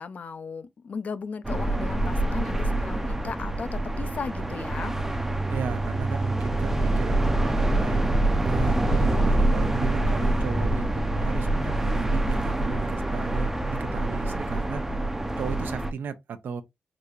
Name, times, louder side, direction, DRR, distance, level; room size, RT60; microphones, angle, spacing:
voice 1, 0.0-4.9, left 5 dB, 50° left, 0.4 m, -36 dB
sound 1, 1.4-15.9, right 1 dB, 10° right, 0.5 m, -25 dB
voice 2, 5.5-15.0 15.4-16.6, right 6 dB, 80° right, 0.6 m, -35 dB
4.8 x 2.8 x 2.3 m
wide cardioid pair, 145°, 3 cm